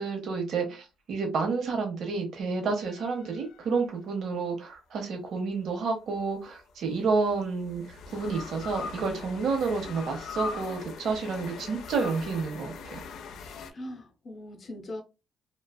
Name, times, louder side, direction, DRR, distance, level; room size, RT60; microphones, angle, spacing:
voice 1, 0.0-13.0, right 4 dB, 70° right, 0.8 m, -30 dB
sound 1, 2.8-4.3 6.2-13.7, left 5 dB, 75° left, 0.4 m, -41 dB
voice 2, 13.7-15.0, left 1 dB, 45° left, 0.8 m, -40 dB
2.4 x 2.3 x 2.2 m
cardioid pair, 90°, 0 cm